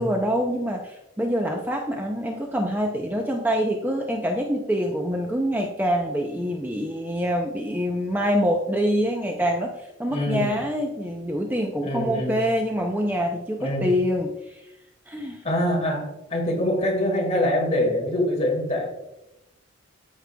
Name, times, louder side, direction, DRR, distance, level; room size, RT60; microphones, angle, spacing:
voice 1, 0.0-14.6 15.1-15.4, equal, 10° right, 1 dB, 0.5 m, -25 dB
voice 2, 10.0-10.6 11.8-12.4 13.6-13.9 15.4-18.9, left 1 dB, 35° left, -1 dB, 1.9 m, -24 dB
12.5 x 4.8 x 2.2 m, 0.90 s
head